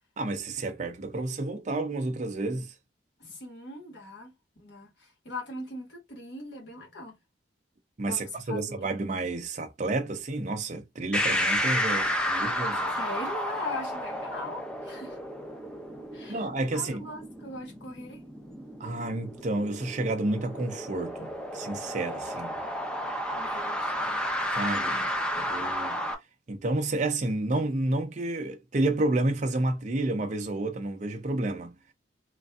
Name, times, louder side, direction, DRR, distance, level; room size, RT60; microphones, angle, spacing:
voice 1, 0.2-2.7 8.0-12.9 16.3-17.0 18.8-22.6 24.6-25.1 25.4-26.0 26.5-31.7, right 2 dB, 45° right, 0.5 m, -30 dB
voice 2, 3.2-4.3 4.6-7.2 8.1-8.8 12.9-15.2 16.1-16.5 16.7-18.2 23.4-24.2 24.7-25.0, left 2 dB, 85° left, 1.5 m, -40 dB
sound 1, 11.1-26.1, equal, 5° left, 0.6 m, -32 dB
3.1 x 2.5 x 2.3 m
head